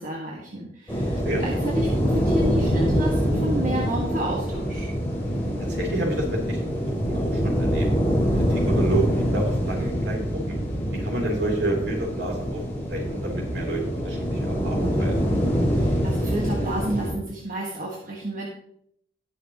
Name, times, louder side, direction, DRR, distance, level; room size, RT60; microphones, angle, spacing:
voice 1, 0.0-4.9 15.7-18.5, right 1 dB, 45° right, -3 dB, 1.7 m, -30 dB
sound 1, 0.9-17.1, equal, 10° left, 2.9 m, -25 dB
voice 2, 5.7-6.6 7.1-7.9 8.4-10.2 10.5-10.6 11.0-12.6 12.9-15.2, right 1 dB, 65° right, -1 dB, 3.5 m, -29 dB
19.0 x 6.6 x 3.1 m, 0.68 s
head